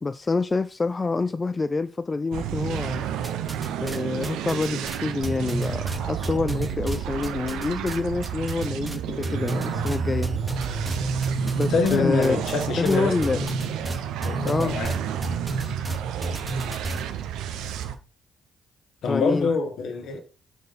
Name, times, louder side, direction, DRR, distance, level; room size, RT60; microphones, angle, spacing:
voice 1, 0.0-3.1 3.8-10.3 11.6-12.4 12.8-13.4 14.4-14.8 19.1-19.5, left 3 dB, 30° left, 0.4 m, -26 dB
sound 1, 2.3-18.0, right 9 dB, 70° right, 0.6 m, -31 dB
sound 2, 3.2-4.0 4.2-8.0 8.2-9.0 9.2-17.0, right 1 dB, 20° right, 1.4 m, -31 dB
voice 2, 11.7-13.6 14.2-14.9 19.0-20.2, left 4 dB, 60° left, 1.5 m, -26 dB
6.4 x 4.5 x 5.2 m
figure-of-eight pair, 40°, 0 cm